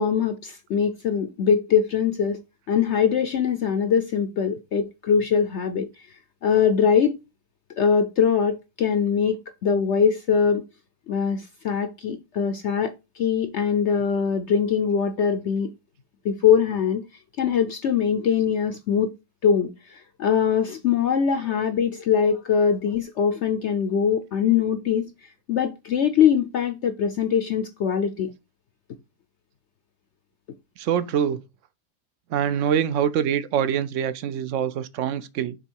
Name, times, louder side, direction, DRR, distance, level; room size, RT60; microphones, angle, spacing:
voice 1, 0.0-2.4 2.7-5.9 6.4-7.2 7.8-9.4 9.6-10.6 11.1-15.7 16.2-17.0 17.4-19.1 19.4-28.3, left 7 dB, 60° left, 0.7 m, -22 dB
voice 2, 30.8-31.4 32.3-35.6, right 8 dB, 65° right, 0.8 m, -24 dB
6.9 x 3.6 x 4.5 m
omnidirectional pair, 1.7 m